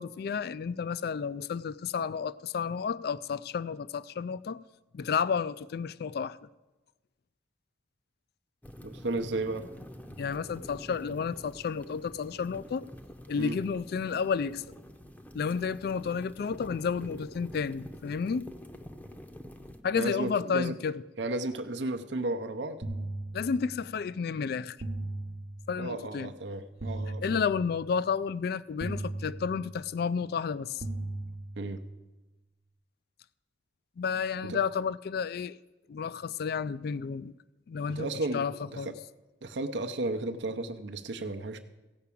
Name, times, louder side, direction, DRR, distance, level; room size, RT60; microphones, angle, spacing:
voice 1, 0.0-4.6 4.9-6.4 10.2-12.8 13.3-14.6 15.3-18.5 19.8-21.0 23.3-24.8 25.7-26.3 27.2-30.8 34.0-35.6 35.9-37.3 37.7-39.0, left 6 dB, 55° left, 0.3 m, -31 dB
sound 1, 8.6-19.8, equal, 10° left, 0.7 m, -47 dB
voice 2, 8.8-9.7 13.4-13.6 19.9-20.7 21.2-22.8 25.8-27.4 31.6-31.8 34.5-34.6 38.0-38.4 38.7-38.9 39.4-41.6, right 2 dB, 70° right, 0.7 m, -33 dB
sound 2, 22.8-24.0 24.8-26.0 26.8-28.0 28.8-30.0 30.8-32.0, right 2 dB, 45° right, 0.9 m, -38 dB
15.5 x 5.7 x 8.4 m
head